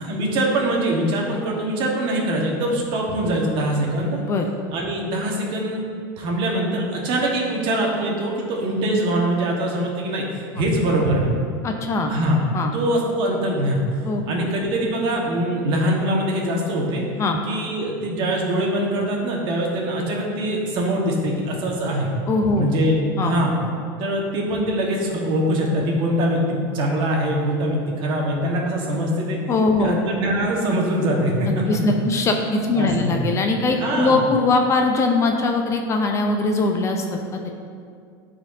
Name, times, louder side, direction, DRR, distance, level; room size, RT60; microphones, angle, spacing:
voice 1, 0.0-4.2 4.7-5.9 6.2-11.3 12.1-12.4 12.7-13.8 14.2-17.0 17.4-22.1 22.6-23.5 24.0-29.4 29.8-31.6 32.7-33.2 33.8-34.2, right 1 dB, 50° right, -1 dB, 1.4 m, -23 dB
voice 2, 11.6-12.1 12.5-12.7 14.0-14.5 17.2-17.4 22.3-22.7 23.2-23.3 29.5-30.0 31.7-37.0 37.3-37.5, left 3 dB, 25° left, 3 dB, 0.6 m, -21 dB
11.5 x 4.3 x 2.7 m, 2.2 s
supercardioid pair, 140°, 11 cm